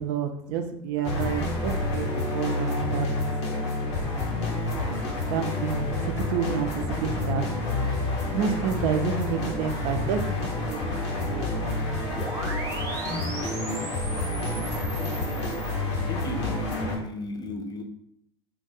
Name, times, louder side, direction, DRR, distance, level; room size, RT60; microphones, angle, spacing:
voice 1, 0.0-3.1 4.0-4.3 5.3-7.6 8.3-11.8 12.3-13.0, right 7 dB, 60° right, 6 dB, 0.4 m, -30 dB
sound 1, 1.0-17.0, left 2 dB, 80° left, 0.7 m, -29 dB
sound 2, 12.1-15.7, right 2 dB, 25° right, 0.6 m, -38 dB
voice 2, 15.9-17.8, left 1 dB, 25° left, 4 dB, 0.5 m, -34 dB
2.3 x 2.2 x 2.8 m, 0.76 s
hypercardioid pair, 75°, 15 cm